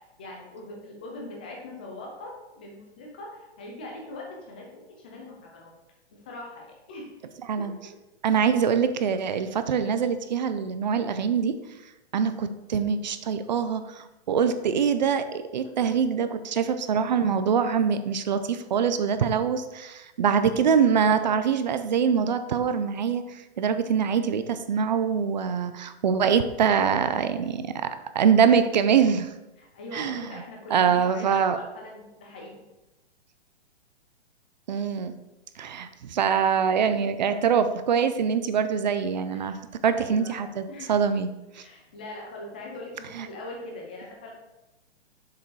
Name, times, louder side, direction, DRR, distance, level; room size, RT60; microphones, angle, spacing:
voice 1, 0.0-5.7 6.1-7.2 7.6-7.7 15.8-15.9 29.6-32.6 39.3-39.6 39.9-41.0 41.6-44.3, left 2 dB, 10° left, -1 dB, 0.4 m, -42 dB
voice 2, 8.2-11.6 12.1-29.3 29.9-30.4 30.7-31.6 34.7-35.1 35.6-39.6 39.8-41.3 41.5-41.6 43.1-43.3, right 7 dB, 45° right, 11 dB, 0.5 m, -24 dB
7.2 x 4.8 x 4.8 m, 0.99 s
hypercardioid pair, 170°, 33 cm